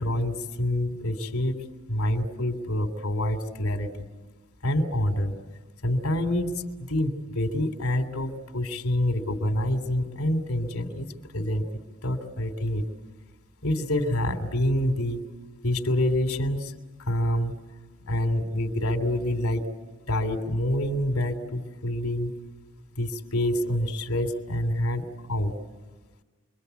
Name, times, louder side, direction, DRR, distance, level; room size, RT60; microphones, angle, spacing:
voice 1, 0.0-1.6 1.9-3.9 4.6-5.3 5.8-11.7 12.0-12.8 13.6-15.2 15.6-16.7 17.1-17.6 18.1-19.7 20.1-22.3 23.0-25.5, left 1 dB, 85° left, 5 dB, 3.0 m, -27 dB
29.5 x 23.5 x 8.3 m, 1.3 s
head